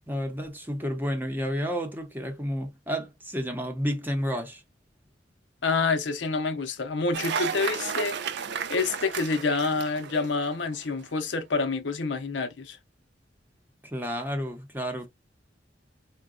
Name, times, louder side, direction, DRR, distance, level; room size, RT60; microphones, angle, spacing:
voice 1, 0.1-4.6 13.8-15.1, equal, 10° right, 0.8 m, -31 dB
voice 2, 5.6-8.2 8.7-12.8, left 4 dB, 85° left, 0.7 m, -27 dB
Cheering / Applause, 7.1-10.8, right 7 dB, 65° right, 0.4 m, -33 dB
3.8 x 2.2 x 2.4 m
head